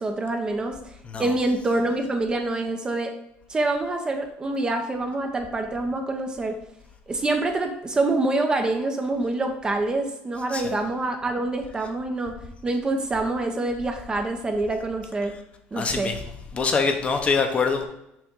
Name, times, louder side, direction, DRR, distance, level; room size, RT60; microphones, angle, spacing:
voice 1, 0.0-3.1 3.5-6.6 7.1-12.4 12.6-15.4 15.7-16.1, right 2 dB, 20° right, 5 dB, 0.7 m, -26 dB
voice 2, 15.8-16.2 16.5-17.8, left 5 dB, 30° left, 5 dB, 0.8 m, -24 dB
6.0 x 3.7 x 5.3 m, 0.82 s
cardioid pair, 135°, 4 cm